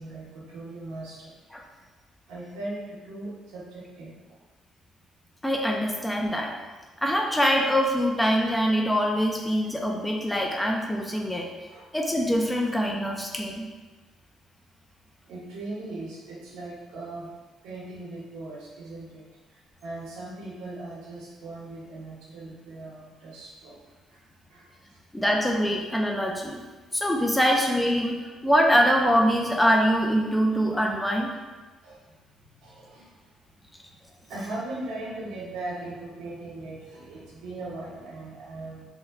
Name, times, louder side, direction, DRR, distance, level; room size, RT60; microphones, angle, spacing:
voice 1, 0.0-1.3 2.3-4.4 11.7-11.8 15.3-17.3 17.6-19.2 19.5-23.8 24.1-24.2 24.5-25.0 31.0-31.1 31.8-32.2 32.6-33.1 34.3-38.9, right 2 dB, 90° right, -6 dB, 0.9 m, -39 dB
voice 2, 5.4-6.5 7.0-11.5 11.9-13.7 25.1-26.6 26.9-28.2 28.4-31.3, equal, 5° left, 1 dB, 0.4 m, -24 dB
3.4 x 2.2 x 3.5 m, 1.3 s
cardioid pair, 95°, 0 cm